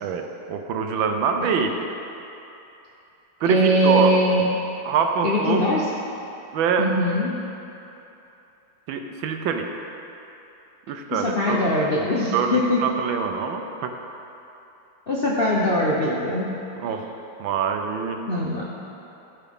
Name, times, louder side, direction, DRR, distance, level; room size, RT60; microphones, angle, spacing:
voice 1, 0.0-1.8 3.4-4.2 4.9-5.6 6.5-6.9 8.9-9.7 10.9-11.6 12.3-14.0 16.8-17.1 17.4-18.2, right 6 dB, 75° right, 4 dB, 1.4 m, -24 dB
voice 2, 3.4-4.5 5.2-5.9 6.8-7.4 11.1-12.8 15.1-16.5 18.3-18.6, equal, 55° left, -5 dB, 0.6 m, -22 dB
15.5 x 5.8 x 3.6 m, 2.9 s
omnidirectional pair, 2.3 m